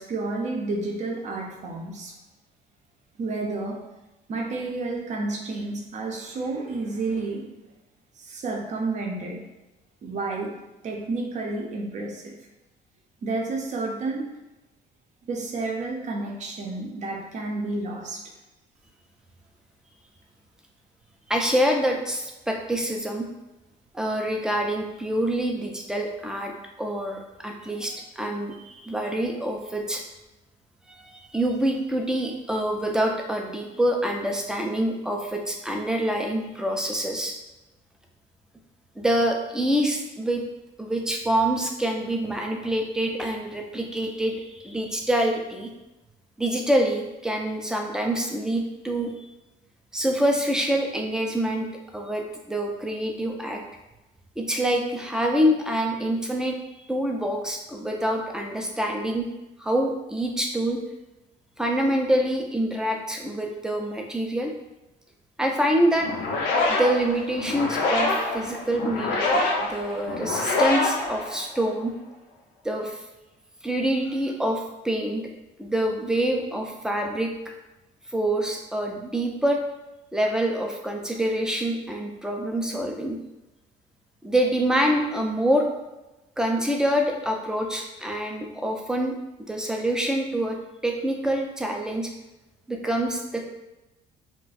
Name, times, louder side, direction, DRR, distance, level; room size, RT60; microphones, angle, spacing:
voice 1, 0.0-2.1 3.2-3.8 4.3-7.5 8.2-9.4 10.0-10.5 10.8-12.3 13.2-14.3 15.3-18.2, right 3 dB, 45° right, 0 dB, 0.6 m, -30 dB
voice 2, 21.3-23.3 23.9-26.5 26.8-30.0 30.9-37.3 39.0-40.4 40.8-45.7 46.4-49.1 49.9-51.7 51.9-53.6 54.4-56.6 56.9-59.3 59.6-60.8 61.6-64.5 65.4-66.1 66.7-71.9 72.6-73.0 73.6-75.2 75.6-77.3 78.1-79.6 80.1-83.2 84.2-85.7 86.4-89.1 89.5-90.6 90.8-92.1 92.7-93.4, right 1 dB, 5° right, 1 dB, 0.4 m, -26 dB
sound 1, 66.0-71.8, left 2 dB, 85° left, 0.6 m, -26 dB
2.4 x 2.2 x 4.0 m, 1.0 s
cardioid pair, 110°, 17 cm